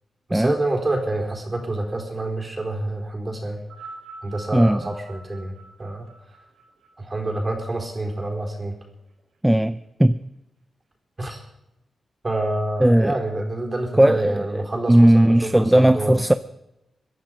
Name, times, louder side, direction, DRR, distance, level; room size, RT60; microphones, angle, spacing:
voice 1, 0.3-3.6 4.2-6.1 7.0-8.7 11.2-11.4 12.2-16.2, right 2 dB, 30° right, 4.4 m, -27 dB
sound 1, 3.6-8.1 9.0-9.1, right 3 dB, 80° right, 3.6 m, -45 dB
voice 2, 9.4-10.2 12.8-13.1 14.0-16.3, right 1 dB, 10° right, 0.5 m, -17 dB
24.0 x 10.5 x 5.2 m
wide cardioid pair, 105°, 0 cm